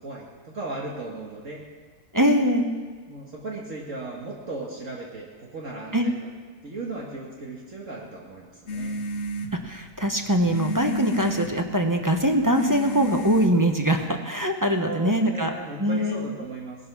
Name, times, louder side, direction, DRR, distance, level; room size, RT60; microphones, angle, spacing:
voice 1, 0.0-1.6 3.1-6.3 6.6-8.9 11.2-11.3 14.8-16.8, right 3 dB, 55° right, -3 dB, 2.1 m, -36 dB
voice 2, 2.1-2.7 5.9-6.1 9.6-15.5 15.8-16.3, equal, 15° right, 4 dB, 0.9 m, -22 dB
sound 1, 8.7-14.1, equal, 50° left, 1.3 m, -33 dB
18.5 x 11.0 x 6.1 m, 1.5 s
omnidirectional pair, 1.7 m